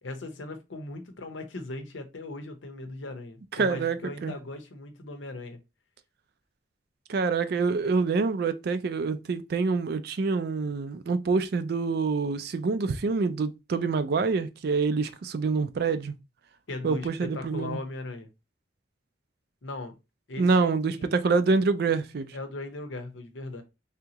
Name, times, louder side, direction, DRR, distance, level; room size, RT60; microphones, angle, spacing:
voice 1, 0.0-5.6 16.7-18.3 19.6-20.0 20.3-21.1 22.3-23.6, left 2 dB, 85° left, 0.8 m, -38 dB
voice 2, 3.5-4.3 7.1-16.1 16.8-17.8 20.4-22.4, right 4 dB, 55° right, 0.4 m, -26 dB
3.5 x 2.8 x 2.8 m
head